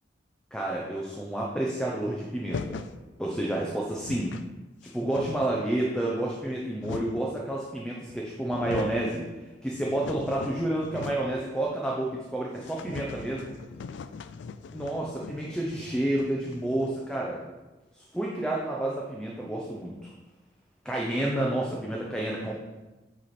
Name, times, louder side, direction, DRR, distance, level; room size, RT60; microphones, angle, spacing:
voice 1, 0.5-2.9 3.2-4.3 4.9-9.3 9.6-13.5 14.7-17.4 17.9-20.1 20.8-22.6, right 1 dB, 5° left, -2 dB, 0.6 m, -30 dB
sound 1, 2.5-3.0 3.6-3.7 3.9-4.5 4.8-5.7 6.4-7.3 8.1-8.2 8.5-9.1 9.5-11.4 11.7-11.8 12.1-12.2 12.6-17.1, left 5 dB, 75° left, 0.3 m, -40 dB
9.0 x 3.2 x 4.3 m, 1.1 s
head